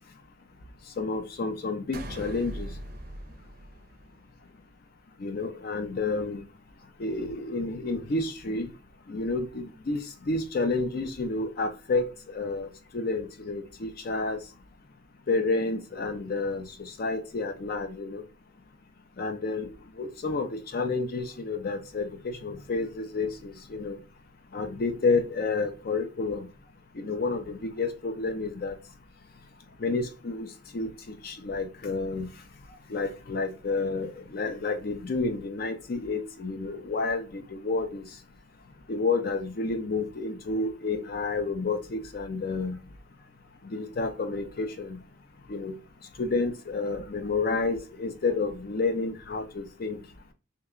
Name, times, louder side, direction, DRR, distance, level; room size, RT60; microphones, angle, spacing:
voice 1, 1.0-2.7 5.2-6.4 7.0-8.7 9.1-14.4 15.3-18.2 19.2-19.7 20.0-24.0 24.5-26.5 27.0-28.8 29.8-30.5 30.7-30.9 31.2-32.3 32.9-38.1 38.9-42.8 43.6-45.0 45.5-45.8 46.2-50.0, left 3 dB, 50° left, 0.5 m, -30 dB
sound 1, 1.9-4.5, right 1 dB, 50° right, 0.5 m, -41 dB
2.9 x 2.2 x 3.5 m
head